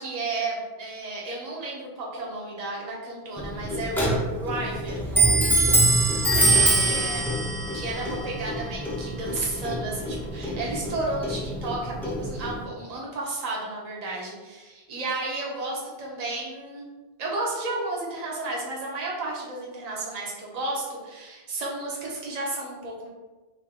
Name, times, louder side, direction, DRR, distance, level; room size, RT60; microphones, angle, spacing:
voice 1, 0.0-5.5 6.1-7.3 7.7-16.8 17.2-23.1, right 2 dB, 40° right, -3 dB, 0.8 m, -33 dB
Clock, 3.4-12.6, right 2 dB, ahead, 0.6 m, -24 dB
3.4 x 2.5 x 3.6 m, 1.2 s
omnidirectional pair, 1.1 m